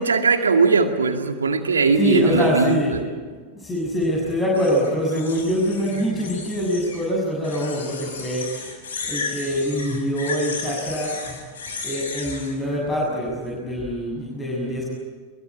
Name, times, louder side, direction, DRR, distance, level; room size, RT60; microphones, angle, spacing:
voice 1, 0.0-3.0, right 4 dB, 80° right, 5 dB, 2.2 m, -20 dB
voice 2, 2.0-3.0 3.5-8.5 9.0-11.4 11.8-14.9, equal, 15° left, -3 dB, 7.2 m, -24 dB
sound 1, 4.5-7.1 7.4-12.5, left 4 dB, 70° left, 5.8 m, -34 dB
24.5 x 23.0 x 8.7 m, 1.5 s
figure-of-eight pair, 95°, 0 cm